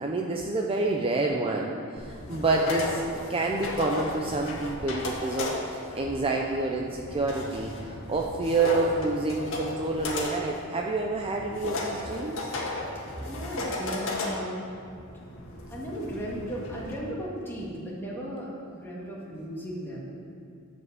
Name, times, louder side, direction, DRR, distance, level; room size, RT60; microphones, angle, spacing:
voice 1, 0.0-3.0 3.3-12.5, right 3 dB, 25° right, 0 dB, 0.6 m, -28 dB
sound 1, 2.0-16.9, left 2 dB, 65° left, 1.7 m, -35 dB
voice 2, 13.2-14.6 15.7-20.0, equal, 10° left, -5 dB, 2.1 m, -36 dB
11.0 x 5.2 x 7.6 m, 2.4 s
head